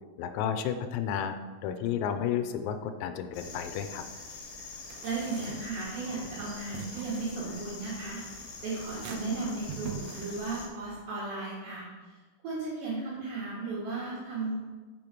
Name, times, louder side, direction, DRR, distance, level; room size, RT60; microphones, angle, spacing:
voice 1, 0.2-1.4 1.6-4.0, left 8 dB, 90° left, 8 dB, 3.4 m, -32 dB
sound 1, 3.3-10.7, left 3 dB, 75° left, 4.1 m, -45 dB
sound 2, 4.9-11.0, right 7 dB, 85° right, 3.0 m, -45 dB
voice 2, 5.0-12.2 12.4-14.6, right 3 dB, 65° right, -8 dB, 3.6 m, -35 dB
7.5 x 6.8 x 4.6 m, 1.3 s
omnidirectional pair, 5.9 m